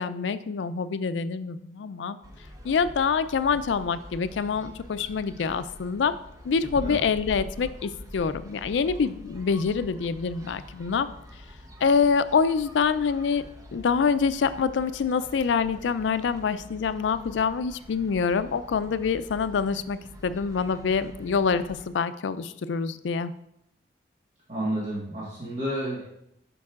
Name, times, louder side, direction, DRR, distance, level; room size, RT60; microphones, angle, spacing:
voice 1, 0.0-2.2 2.6-6.2 6.4-11.1 11.8-13.4 13.7-23.3, left 5 dB, 85° left, 13 dB, 0.4 m, -26 dB
sound 1, 2.2-21.9, equal, 20° right, 0.7 m, -45 dB
voice 2, 24.5-26.1, right 1 dB, 40° right, -7 dB, 1.5 m, -30 dB
10.5 x 5.3 x 2.4 m, 0.78 s
head